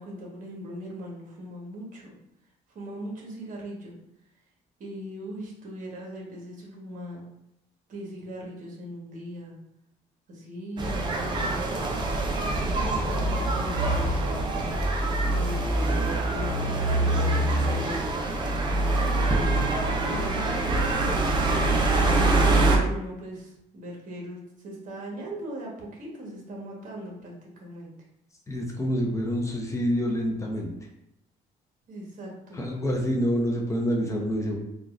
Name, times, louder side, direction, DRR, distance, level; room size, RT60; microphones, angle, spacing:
voice 1, 0.0-2.2 2.7-3.9 4.8-7.2 7.9-9.6 10.3-11.8 12.4-14.7 15.3-18.4 19.2-21.3 21.9-27.9 31.9-32.6, right 1 dB, 50° right, -3 dB, 1.2 m, -39 dB
sound 1, 10.8-22.8, right 2 dB, 25° right, 0.6 m, -24 dB
voice 2, 28.5-30.7 32.5-34.6, equal, 15° left, 0 dB, 0.6 m, -27 dB
3.9 x 2.4 x 2.4 m, 0.81 s
cardioid pair, 110°, 17 cm